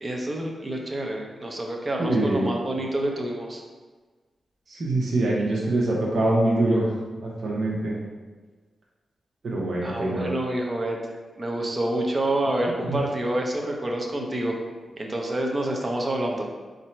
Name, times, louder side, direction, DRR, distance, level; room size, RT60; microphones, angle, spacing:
voice 1, 0.0-3.6 9.8-11.0 11.4-14.6 15.0-16.5, right 1 dB, 30° right, 0 dB, 0.7 m, -27 dB
voice 2, 2.0-2.5 4.7-6.9 7.2-7.9 9.4-10.3 12.9-13.0, right 2 dB, 65° right, -4 dB, 0.8 m, -24 dB
4.2 x 2.6 x 4.4 m, 1.4 s
cardioid pair, 70°, 0 cm